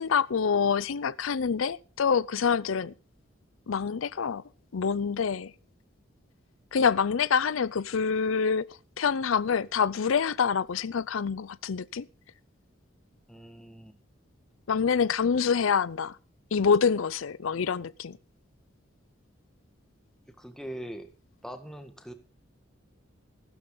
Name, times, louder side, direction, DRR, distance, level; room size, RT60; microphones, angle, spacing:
voice 1, 0.0-2.9 3.7-4.4 4.7-5.5 6.7-8.7 9.0-12.1 14.7-16.2 16.5-18.2, left 6 dB, 80° left, 0.5 m, -26 dB
voice 2, 13.3-14.0 20.4-21.1 21.4-22.1, equal, 5° left, 1.7 m, -41 dB
15.5 x 12.5 x 3.9 m
head